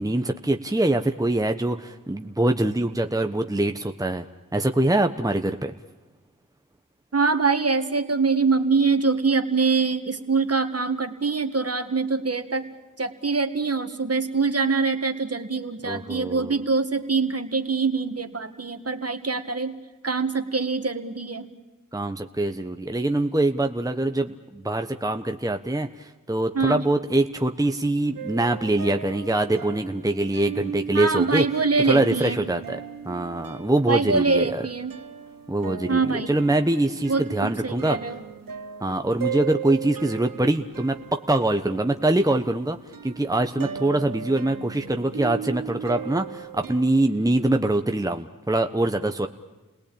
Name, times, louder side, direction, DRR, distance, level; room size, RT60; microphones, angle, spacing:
voice 1, 0.0-4.3 4.5-5.7 15.8-16.6 21.9-31.5 31.9-32.8 33.0-34.6 35.5-38.0 38.8-42.8 43.0-49.3, right 2 dB, 10° right, 6 dB, 1.2 m, -24 dB
voice 2, 7.1-12.7 13.0-19.8 20.0-21.5 26.5-26.8 30.9-32.4 33.9-35.0 35.9-36.3 37.1-38.2, right 4 dB, 45° right, 8 dB, 1.9 m, -24 dB
sound 1, 28.2-47.0, right 8 dB, 75° right, 1.3 m, -38 dB
29.5 x 18.0 x 8.8 m, 1.2 s
cardioid pair, 45°, 34 cm